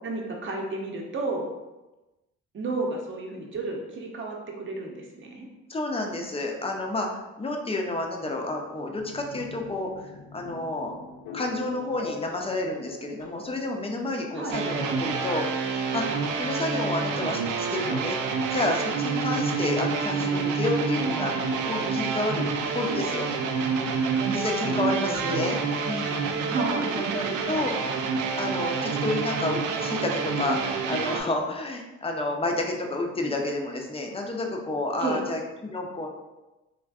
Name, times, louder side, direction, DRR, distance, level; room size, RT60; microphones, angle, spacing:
voice 1, 0.0-1.5 2.5-5.5 14.3-14.6 24.6-25.6 26.5-26.9 35.0-35.2, right 2 dB, 40° right, 1 dB, 0.7 m, -32 dB
voice 2, 5.7-9.9 10.3-10.9 11.3-15.4 15.8-16.0 16.4-18.2 18.5-22.5 22.7-23.3 24.3-25.6 25.9-26.2 27.0-27.7 28.4-36.1, left 2 dB, 20° left, 1 dB, 0.5 m, -30 dB
sound 1, 9.0-22.7, left 5 dB, 80° left, 0.5 m, -46 dB
sound 2, 14.5-31.2, right 5 dB, 80° right, 0.4 m, -28 dB
3.5 x 2.5 x 2.3 m, 1.1 s
cardioid pair, 90°, 30 cm